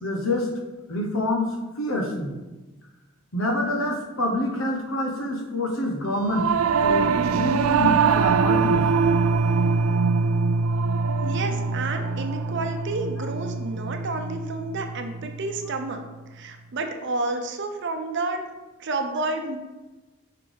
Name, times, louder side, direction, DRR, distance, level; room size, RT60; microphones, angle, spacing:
voice 1, 0.0-0.5 0.9-2.3 3.3-6.5 6.8-8.8, left 1 dB, 85° left, 2 dB, 1.0 m, -26 dB
Singing / Musical instrument, 6.2-15.8, right 5 dB, 85° right, 0.3 m, -23 dB
voice 2, 11.2-16.0 16.3-18.4 18.8-19.6, right 3 dB, 60° right, 5 dB, 0.7 m, -30 dB
5.6 x 3.9 x 5.1 m, 1.2 s
head